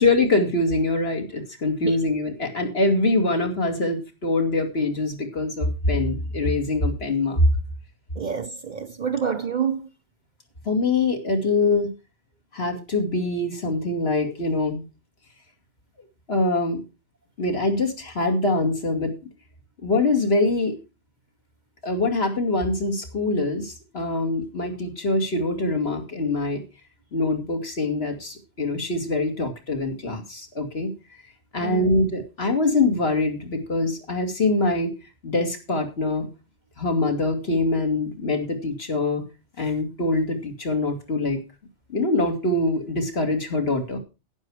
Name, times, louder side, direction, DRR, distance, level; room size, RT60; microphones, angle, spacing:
voice 1, 0.0-7.4 10.7-11.9 12.5-14.8 16.3-16.8 17.4-19.1 19.8-20.7 21.8-26.6 27.1-30.9 31.5-34.9 35.2-36.3 36.8-39.2 39.6-41.4 41.9-44.0, left 2 dB, 60° left, 2.6 m, -24 dB
voice 2, 8.2-9.9 31.6-31.9, right 7 dB, 45° right, 0.8 m, -27 dB
11.5 x 9.7 x 4.8 m
omnidirectional pair, 1.2 m